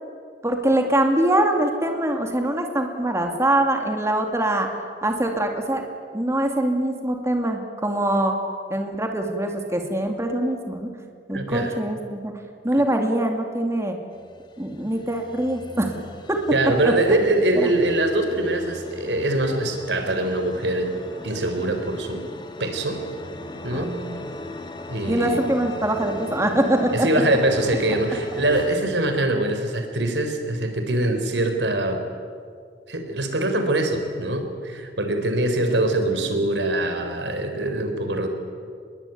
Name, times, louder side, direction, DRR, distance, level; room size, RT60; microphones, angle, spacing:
voice 1, 0.4-4.7 5.0-5.8 6.1-8.4 8.7-10.9 11.3-12.3 12.6-14.0 14.6-15.9 16.3-16.4 16.8-16.9 17.6-17.7 23.7-24.2 25.1-27.1, right 1 dB, 15° right, 3 dB, 2.4 m, -23 dB
voice 2, 11.3-11.7 16.5-21.0 21.2-22.2 22.6-23.0 23.6-24.0 24.9-25.4 26.9-32.0 32.9-38.3, right 1 dB, 90° right, 6 dB, 4.1 m, -23 dB
sound 1, 14.1-28.8, left 2 dB, 25° left, 1.8 m, -39 dB
26.0 x 21.5 x 9.3 m, 2.2 s
head